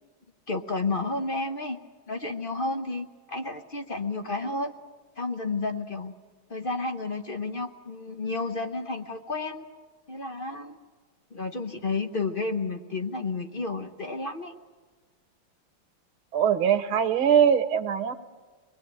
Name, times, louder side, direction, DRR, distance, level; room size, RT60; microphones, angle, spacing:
voice 1, 0.5-1.8 2.1-4.7 5.2-6.1 6.5-9.6 10.1-10.8 11.3-14.5, left 3 dB, 50° left, 6 dB, 0.6 m, -31 dB
voice 2, 16.3-18.1, right 8 dB, 80° right, 8 dB, 1.9 m, -22 dB
24.0 x 20.0 x 8.8 m, 1.4 s
omnidirectional pair, 2.3 m